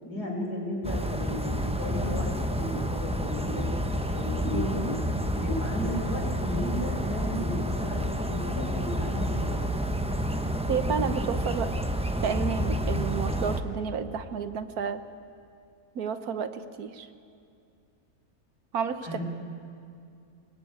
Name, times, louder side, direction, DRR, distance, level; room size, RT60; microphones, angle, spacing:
voice 1, 0.0-3.6 4.1-4.9 5.4-7.5 7.8-9.7 19.0-19.2, left 1 dB, 75° left, -1 dB, 5.7 m, -35 dB
sound 1, 0.8-13.6, equal, 5° right, 0.8 m, -29 dB
voice 2, 4.5-4.9 10.7-11.7 12.2-15.0 15.9-17.1 18.7-19.2, right 6 dB, 65° right, 11 dB, 1.4 m, -31 dB
23.5 x 20.5 x 8.9 m, 2.4 s
omnidirectional pair, 1.7 m